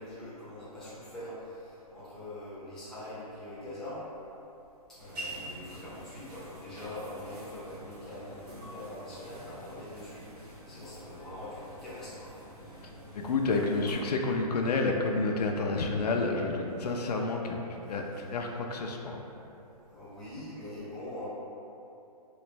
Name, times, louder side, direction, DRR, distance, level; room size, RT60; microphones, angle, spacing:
voice 1, 0.0-4.0 4.9-12.4 19.9-21.3, left 1 dB, ahead, -12 dB, 0.5 m, -43 dB
sound 1, 5.0-13.9, right 1 dB, 75° right, 1.1 m, -47 dB
voice 2, 13.1-17.6 17.9-18.0 18.3-19.2, left 3 dB, 80° left, 1 dB, 0.4 m, -29 dB
3.0 x 2.5 x 3.2 m, 3.0 s
hypercardioid pair, 155°, 20 cm